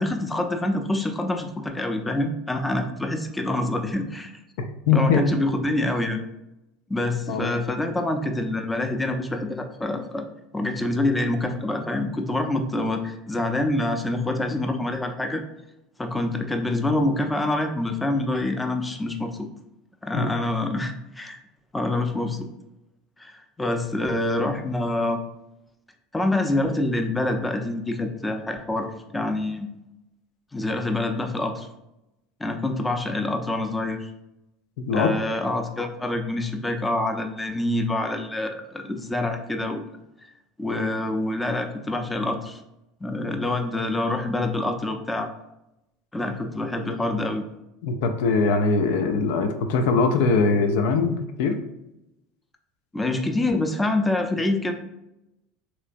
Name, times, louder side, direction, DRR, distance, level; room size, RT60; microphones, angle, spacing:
voice 1, 0.0-4.3 4.9-6.2 6.9-10.3 10.5-15.4 16.0-19.5 20.0-21.4 21.7-22.5 23.2-25.2 26.1-29.7 30.5-31.7 32.4-34.1 34.9-39.9 40.6-42.6 43.0-45.3 46.1-47.4 52.9-54.7, left 2 dB, 10° left, 5 dB, 0.5 m, -26 dB
voice 2, 4.9-5.2 7.3-7.6 20.1-20.3 34.8-35.1 47.8-51.6, left 4 dB, 70° left, 7 dB, 0.4 m, -21 dB
3.2 x 3.0 x 2.5 m, 0.90 s
hypercardioid pair, 85°, 0 cm